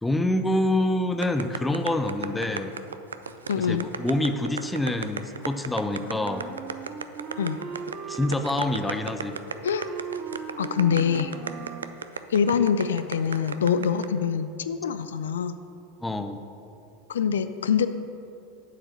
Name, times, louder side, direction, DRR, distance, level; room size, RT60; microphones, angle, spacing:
voice 1, 0.0-2.7 3.6-6.5 8.1-9.4 16.0-16.4, left 1 dB, 10° left, 8 dB, 0.6 m, -26 dB
sound 1, 1.2-14.1, right 6 dB, 85° right, 0.3 m, -34 dB
voice 2, 3.5-3.9 7.4-7.6 9.6-9.9 10.6-11.3 12.3-15.6 17.1-17.9, left 7 dB, 75° left, 11 dB, 0.3 m, -24 dB
Wind instrument woodwind instrument, 6.1-12.0, right 6 dB, 35° right, 0.6 m, -39 dB
7.3 x 4.8 x 6.6 m, 2.7 s
hypercardioid pair, 90°, 0 cm